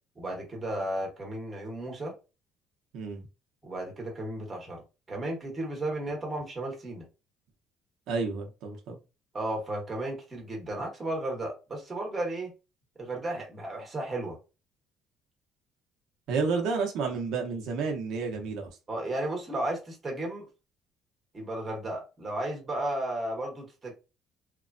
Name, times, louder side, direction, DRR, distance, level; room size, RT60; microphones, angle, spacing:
voice 1, 0.2-2.1 3.6-4.8 5.1-7.1 9.3-12.5 13.0-14.4 18.9-20.5 21.3-23.9, right 1 dB, 20° right, 1.0 m, -34 dB
voice 2, 8.1-9.0 16.3-18.7, right 4 dB, 70° right, 0.7 m, -30 dB
3.0 x 2.1 x 2.5 m
cardioid pair, 165°, 0 cm